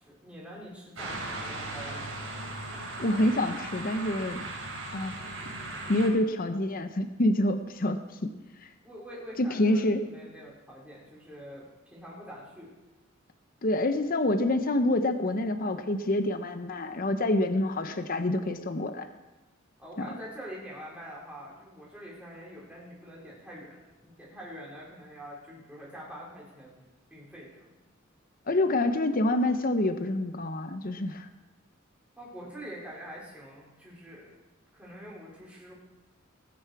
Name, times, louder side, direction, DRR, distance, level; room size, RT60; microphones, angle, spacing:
voice 1, 0.0-2.1 8.8-12.8 19.8-26.8 27.1-27.7 32.2-34.3 34.7-35.7, equal, 5° right, -5 dB, 3.7 m, -45 dB
sound 1, 1.0-6.1, right 2 dB, 75° right, 4.7 m, -38 dB
voice 2, 3.0-4.4 4.9-5.1 5.9-8.3 9.4-10.0 13.6-19.1 20.0-20.1 28.5-31.3, left 1 dB, 45° left, 8 dB, 0.8 m, -27 dB
19.5 x 9.6 x 4.7 m, 1.1 s
head